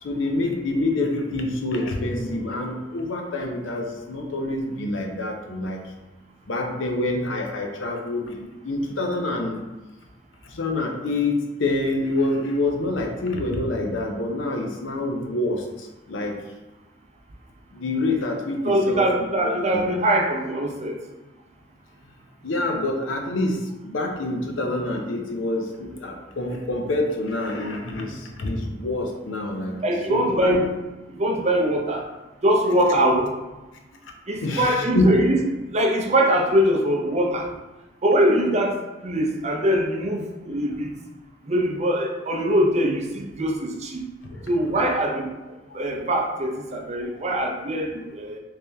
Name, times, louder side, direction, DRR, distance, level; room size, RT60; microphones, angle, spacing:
voice 1, 0.0-5.8 6.5-9.6 10.4-16.3 17.7-19.8 22.4-29.8 30.1-30.5 34.4-35.1 44.2-44.5 45.7-46.0, left 2 dB, 80° left, 3 dB, 0.6 m, -26 dB
voice 2, 18.6-21.0 29.8-30.7 31.1-32.0 32.4-33.3 34.3-35.4 35.7-37.4 38.0-38.8 39.0-40.9 41.4-44.1 44.5-45.3 45.7-48.4, right 1 dB, 35° right, 1 dB, 0.5 m, -22 dB
3.4 x 2.7 x 3.3 m, 1.1 s
head